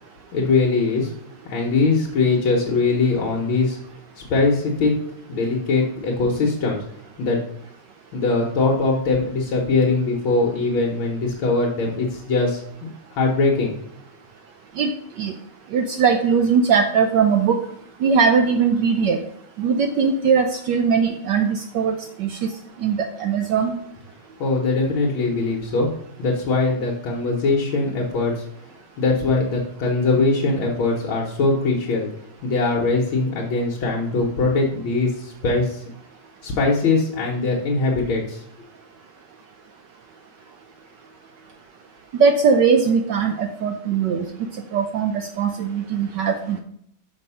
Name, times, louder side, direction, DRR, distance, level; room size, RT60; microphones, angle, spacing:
voice 1, 0.3-1.1 1.5-3.8 4.2-5.0 5.3-6.8 7.2-7.4 8.1-13.7 24.4-25.9 26.2-28.5 29.0-32.1 32.4-35.8 36.4-38.4, left 3 dB, 70° left, -2 dB, 1.7 m, -21 dB
voice 2, 15.7-17.6 18.0-19.2 19.6-22.4 22.8-23.7 42.2-44.3 44.7-46.6, right 6 dB, 70° right, 5 dB, 1.1 m, -20 dB
5.8 x 5.4 x 5.5 m, 0.70 s
omnidirectional pair, 2.3 m